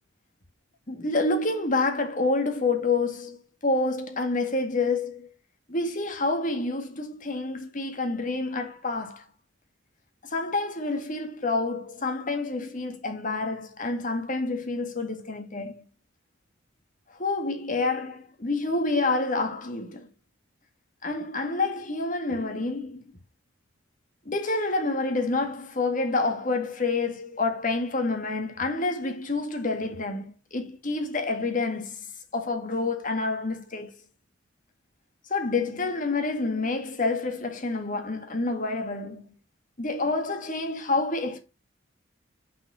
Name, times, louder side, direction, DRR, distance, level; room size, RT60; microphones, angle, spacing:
voice 1, 0.9-5.3 5.7-9.2 10.2-15.8 17.2-20.1 21.0-23.0 24.3-33.9 35.3-39.2 39.8-41.4, left 3 dB, 40° left, 1.9 m, -28 dB
6.0 x 5.6 x 6.3 m
head